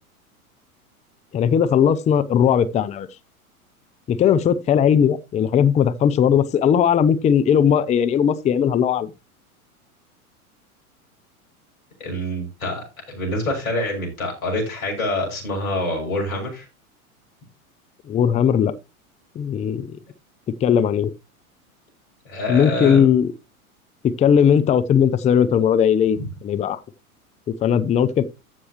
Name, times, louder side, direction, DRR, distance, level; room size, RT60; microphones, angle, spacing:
voice 1, 1.3-3.1 4.1-9.1 18.1-18.7 19.4-20.0 20.6-21.1 22.5-23.3 24.0-26.2 26.4-26.8 27.6-28.3, left 8 dB, 15° left, 0.6 m, -18 dB
voice 2, 12.0-16.7 22.3-23.1 26.2-26.3, left 1 dB, 75° left, 6.9 m, -26 dB
15.0 x 6.2 x 3.0 m
figure-of-eight pair, 90°, 43 cm